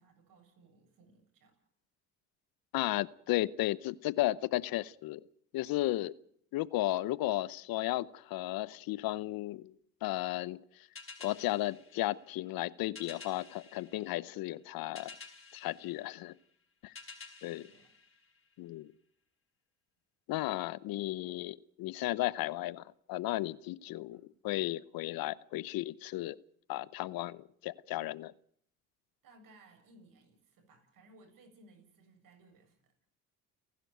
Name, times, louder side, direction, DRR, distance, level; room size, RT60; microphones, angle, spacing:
voice 1, 0.0-1.6 17.6-17.9 24.1-24.3 29.2-32.9, right 2 dB, 65° right, 5 dB, 7.7 m, -61 dB
voice 2, 2.7-5.2 5.5-6.1 6.5-9.7 10.0-10.6 11.2-15.2 15.5-16.3 16.8-16.9 17.4-17.7 18.6-18.9 20.3-26.4 26.7-28.3, left 16 dB, 70° left, 20 dB, 0.9 m, -34 dB
sound 1, 10.9-18.8, left 4 dB, 35° left, 4.8 m, -53 dB
30.0 x 11.5 x 9.3 m, 0.65 s
supercardioid pair, 65°, 37 cm